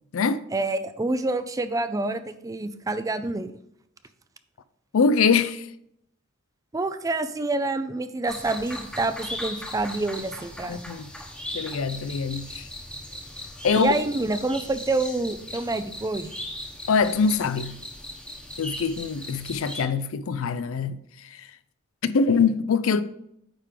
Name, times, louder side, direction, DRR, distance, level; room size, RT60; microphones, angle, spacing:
voice 1, 0.5-3.5 6.7-10.8 13.7-16.3, right 2 dB, 15° right, 0.4 m, -27 dB
voice 2, 4.9-5.7 10.7-11.1 11.5-12.7 13.6-14.0 16.9-17.8 18.6-21.0 21.3-21.4 22.0-23.0, left 5 dB, 75° left, 0.5 m, -23 dB
sound 1, 8.3-19.8, left 1 dB, 5° left, 1.0 m, -38 dB
9.0 x 3.7 x 5.0 m
head